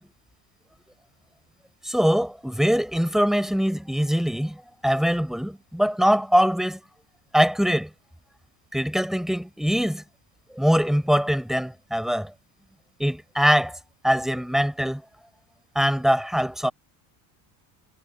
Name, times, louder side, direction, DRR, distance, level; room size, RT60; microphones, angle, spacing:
voice 1, 1.8-6.8 7.3-7.9 8.7-10.0 10.6-12.3 13.0-13.8 14.0-15.0 15.8-16.7, equal, ahead, 5.4 m, -22 dB
supercardioid pair, 100°, 43 cm